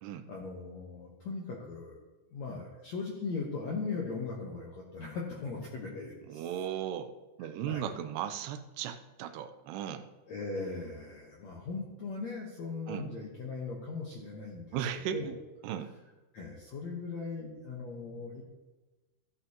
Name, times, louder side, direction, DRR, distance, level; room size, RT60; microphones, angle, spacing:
voice 1, 0.3-2.0 2.3-6.5 7.7-7.9 10.3-15.4 16.3-18.4, left 4 dB, 70° left, -2 dB, 1.7 m, -39 dB
voice 2, 6.3-7.1 7.4-10.1 12.9-13.1 14.7-15.4 15.6-15.9, right 10 dB, 85° right, 9 dB, 2.6 m, -36 dB
15.0 x 9.6 x 2.9 m, 1.2 s
omnidirectional pair, 4.7 m